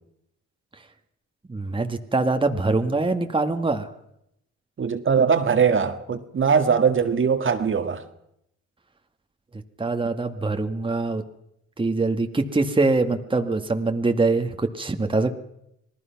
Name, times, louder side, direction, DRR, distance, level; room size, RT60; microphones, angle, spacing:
voice 1, 1.5-3.9 9.8-11.2 11.8-15.3, right 3 dB, 15° right, 1.7 m, -23 dB
voice 2, 4.8-8.0, right 6 dB, 40° right, 1.9 m, -21 dB
27.0 x 19.0 x 5.9 m
cardioid pair, 90°, 30 cm